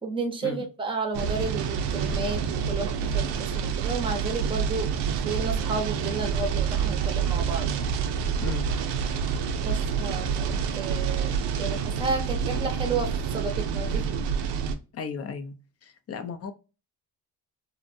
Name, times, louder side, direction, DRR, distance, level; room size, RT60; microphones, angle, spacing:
voice 1, 0.0-4.9 5.3-7.9 9.6-14.1, right 4 dB, 10° right, 3 dB, 0.6 m, -32 dB
sound 1, 1.1-14.8, right 6 dB, 90° right, 0.5 m, -27 dB
voice 2, 8.4-8.7 14.9-15.5 15.8-16.5, left 5 dB, 35° left, 9 dB, 0.4 m, -35 dB
2.5 x 2.1 x 2.6 m, 0.31 s
cardioid pair, 100°, 42 cm